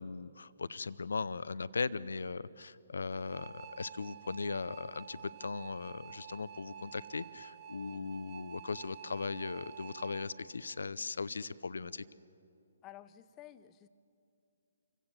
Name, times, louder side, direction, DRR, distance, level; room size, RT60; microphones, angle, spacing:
voice 1, 0.0-12.0, left 4 dB, 70° left, 18 dB, 0.5 m, -38 dB
sound 1, 3.1-10.3, right 7 dB, 25° right, 1.1 m, -49 dB
voice 2, 12.8-13.9, left 13 dB, 20° left, 14 dB, 0.7 m, -52 dB
27.5 x 16.0 x 7.5 m, 2.7 s
figure-of-eight pair, 135°, 0 cm